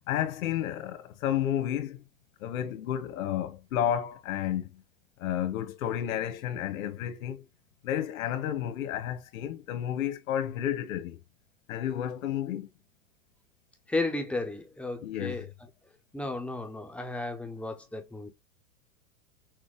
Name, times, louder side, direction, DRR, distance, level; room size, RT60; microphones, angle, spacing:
voice 1, 0.1-2.0 2.4-4.8 5.2-7.5 7.8-11.2 11.7-12.7 15.0-15.5, left 10 dB, 65° left, 1.4 m, -31 dB
voice 2, 13.9-15.5 16.1-18.3, left 2 dB, 5° left, 0.5 m, -33 dB
6.3 x 2.2 x 3.6 m
supercardioid pair, 140°, 44 cm